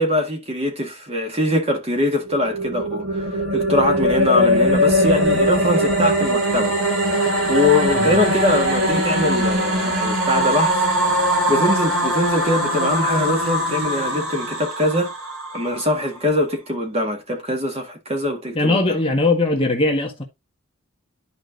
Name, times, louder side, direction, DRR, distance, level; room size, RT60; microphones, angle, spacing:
voice 1, 0.0-6.8 7.5-10.8 11.5-15.1 15.5-19.0, left 1 dB, 30° right, 1.8 m, -22 dB
sound 1, 2.2-15.6, equal, 75° right, 3.8 m, -20 dB
voice 2, 7.9-8.3 18.5-20.2, left 2 dB, 25° left, 1.6 m, -20 dB
11.5 x 4.9 x 2.7 m
head